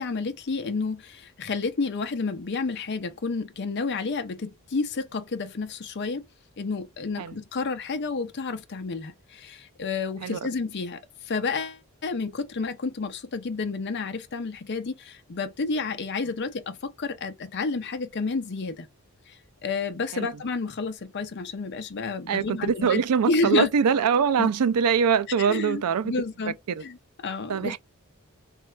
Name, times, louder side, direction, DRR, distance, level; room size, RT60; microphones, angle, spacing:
voice 1, 0.0-6.2 6.6-18.9 19.3-23.0 23.3-23.7 24.4-24.5 25.4-26.5 26.8-27.0 27.2-27.8, left 4 dB, 50° left, 0.5 m, -30 dB
voice 2, 22.3-26.1 26.8-26.9 27.5-27.8, right 7 dB, 90° right, 0.4 m, -23 dB
3.2 x 2.4 x 4.2 m
head